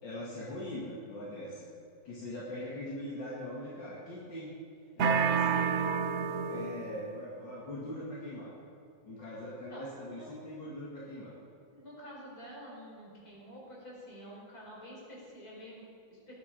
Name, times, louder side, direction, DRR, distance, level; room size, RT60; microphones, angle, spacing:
voice 1, 0.0-1.7 2.0-4.5 5.0-5.8 6.5-8.5 9.0-11.4, left 1 dB, 75° left, -6 dB, 2.8 m, -41 dB
sound 1, 5.0-6.9, right 6 dB, 55° right, 0.8 m, -29 dB
voice 2, 9.7-10.3 11.7-16.3, equal, 50° left, -4 dB, 4.9 m, -49 dB
18.5 x 11.0 x 5.2 m, 2.3 s
omnidirectional pair, 2.0 m